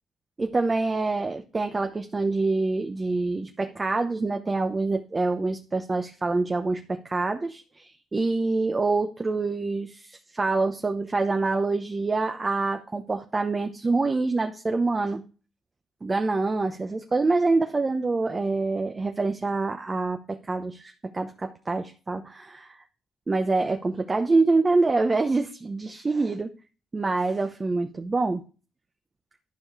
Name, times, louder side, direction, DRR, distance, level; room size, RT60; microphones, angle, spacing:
voice 1, 0.4-15.2 16.0-22.7 23.3-26.5 26.9-28.4, right 3 dB, 30° right, 5 dB, 0.9 m, -26 dB
11.5 x 4.8 x 4.8 m, 0.36 s
cardioid pair, 70°, 0 cm